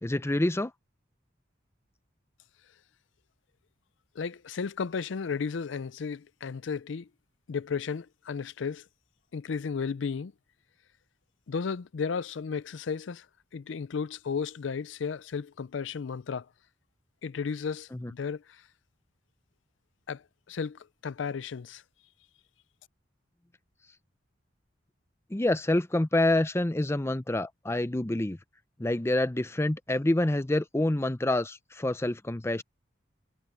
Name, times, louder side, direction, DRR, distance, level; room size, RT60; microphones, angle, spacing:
voice 1, 0.0-0.7 17.9-18.1 25.3-28.4 28.8-32.6, left 1 dB, 15° left, 0.5 m, -27 dB
voice 2, 4.2-7.1 7.5-8.9 9.3-10.3 11.5-13.3 13.5-16.5 17.2-18.6 20.1-21.8, left 5 dB, 75° left, 0.5 m, -34 dB
head